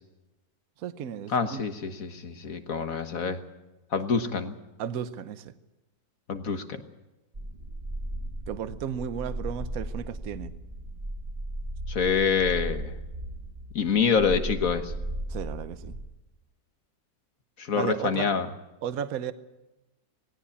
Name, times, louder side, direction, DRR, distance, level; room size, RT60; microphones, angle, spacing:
voice 1, 0.8-1.6 4.8-5.6 8.5-10.5 15.3-16.0 17.7-18.3 18.8-19.3, right 8 dB, 60° right, 12 dB, 1.2 m, -34 dB
voice 2, 1.3-3.4 3.9-4.6 6.3-6.8 11.9-12.9 13.8-14.9 17.6-18.5, left 6 dB, 50° left, 8 dB, 1.7 m, -26 dB
sound 1, 7.3-16.1, right 1 dB, 30° right, 2.4 m, -36 dB
19.0 x 17.0 x 8.5 m, 1.0 s
omnidirectional pair, 1.9 m